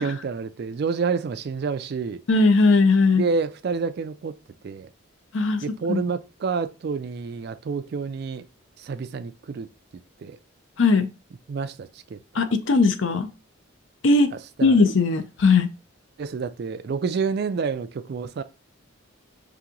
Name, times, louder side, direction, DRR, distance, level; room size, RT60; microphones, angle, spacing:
voice 1, 0.0-2.2 3.1-4.3 4.6-4.9 5.6-8.4 8.8-9.7 10.2-10.4 11.5-12.2 14.6-14.8 16.2-18.4, right 5 dB, 50° right, 0.3 m, -28 dB
voice 2, 2.3-3.2 5.3-5.6 5.9-6.0 10.8-11.1 12.4-13.3 14.0-14.3 14.6-15.7, left 3 dB, 65° left, 0.5 m, -18 dB
3.4 x 3.0 x 3.7 m
head